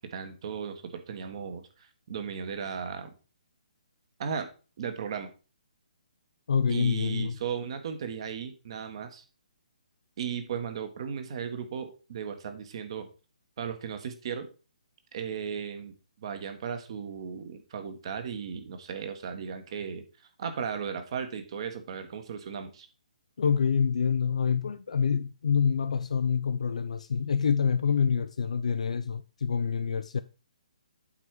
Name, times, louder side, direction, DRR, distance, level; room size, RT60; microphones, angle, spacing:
voice 1, 0.1-3.1 4.2-4.5 4.8-5.3 6.7-9.2 10.2-13.1 13.6-14.5 15.1-20.0 20.4-22.9, right 7 dB, 45° right, 1.5 m, -36 dB
voice 2, 6.5-7.4 23.4-30.2, left 6 dB, 60° left, 0.5 m, -26 dB
8.3 x 4.5 x 4.8 m
figure-of-eight pair, 135°, 4 cm